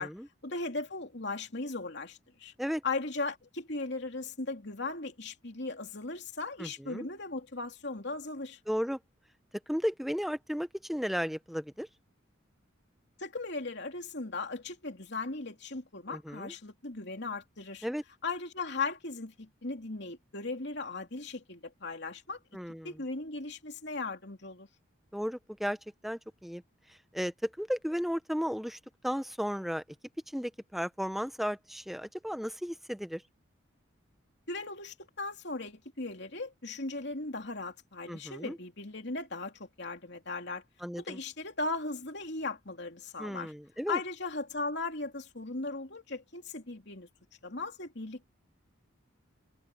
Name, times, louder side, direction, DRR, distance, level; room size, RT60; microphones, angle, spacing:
voice 1, 0.4-2.5 2.8-8.6 13.2-17.9 18.2-22.4 22.8-24.7 34.5-40.6 41.0-43.5 43.9-47.1 47.4-48.3, left 3 dB, 55° left, 3.2 m, -37 dB
voice 2, 6.6-7.1 8.7-9.0 9.7-11.9 16.1-16.5 17.8-18.0 22.5-23.0 25.1-25.8 26.0-26.6 27.1-29.8 30.3-33.2 38.1-38.6 40.8-41.2 43.2-44.0, equal, ahead, 0.8 m, -34 dB
head